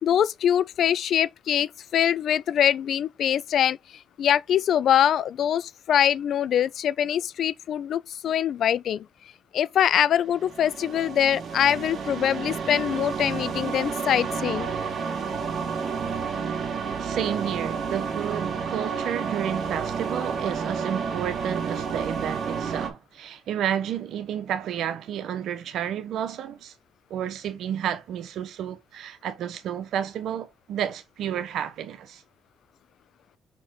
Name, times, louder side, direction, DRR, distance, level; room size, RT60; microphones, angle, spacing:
voice 1, 0.0-9.1 9.5-14.7, left 10 dB, 70° left, 0.4 m, -23 dB
sound 1, 10.3-22.9, right 6 dB, 55° right, 2.0 m, -30 dB
voice 2, 17.0-26.7 27.1-32.2, right 9 dB, 75° right, 1.1 m, -31 dB
5.7 x 4.4 x 3.8 m
cardioid pair, 90°, 0 cm